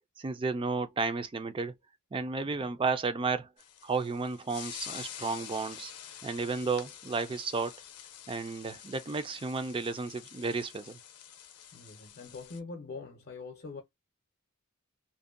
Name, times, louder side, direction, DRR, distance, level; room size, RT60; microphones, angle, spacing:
voice 1, 0.2-1.7 2.1-3.5 3.8-5.9 6.2-7.8 8.3-11.0, right 4 dB, 25° right, 0.4 m, -32 dB
sound 1, 3.6-12.6, left 9 dB, 90° left, 0.6 m, -47 dB
voice 2, 11.7-13.8, left 4 dB, 45° left, 0.6 m, -44 dB
2.6 x 2.1 x 2.4 m
head